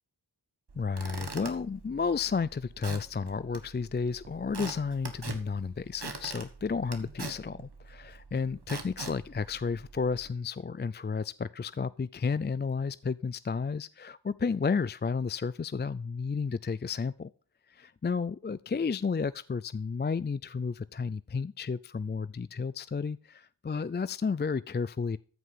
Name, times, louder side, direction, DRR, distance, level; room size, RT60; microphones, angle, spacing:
Squeak / Wood, 0.7-10.3, right 4 dB, 70° right, 1.6 m, -44 dB
voice 1, 0.8-17.3 17.7-25.2, left 5 dB, 25° left, 0.4 m, -32 dB
14.0 x 5.2 x 5.6 m
wide cardioid pair, 40°, 40 cm